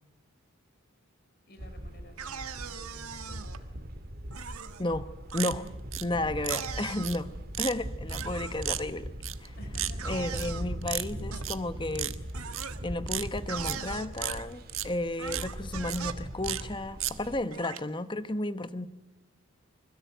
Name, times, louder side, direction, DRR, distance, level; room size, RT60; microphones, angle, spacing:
voice 1, 1.5-3.7 5.5-5.7 6.1-6.3 9.6-10.7, equal, 45° left, 8 dB, 5.0 m, -53 dB
sound 1, 1.6-17.4, equal, 45° right, 2.1 m, -40 dB
sound 2, 2.2-3.6 4.3-4.9 5.3-5.5 6.5-7.2 8.1-8.6 10.0-10.7 11.3-11.5 12.3-12.8 13.5-14.5 15.2-16.2 16.5-16.7 17.5-17.8, right 7 dB, 90° right, 1.8 m, -40 dB
voice 2, 5.3-5.6 6.0-7.3 7.6-9.1 9.4-9.5 10.1-12.2 12.8-18.9, left 1 dB, 20° left, 12 dB, 1.0 m, -33 dB
sound 3, 5.3-6.0 6.4-6.7 7.0-7.2 7.5-7.7 8.1-8.2 8.6-8.8 9.2-9.5 9.7-9.9 10.3-10.5 10.8-11.1 11.4-11.6 11.9-12.1 12.5-12.6 13.1-13.8 14.2-14.4 14.7-14.9 15.3-15.4 15.9-16.0 16.4-16.6 17.0-17.1, right 14 dB, 70° right, 1.3 m, -33 dB
25.5 x 21.5 x 9.1 m, 1.0 s
head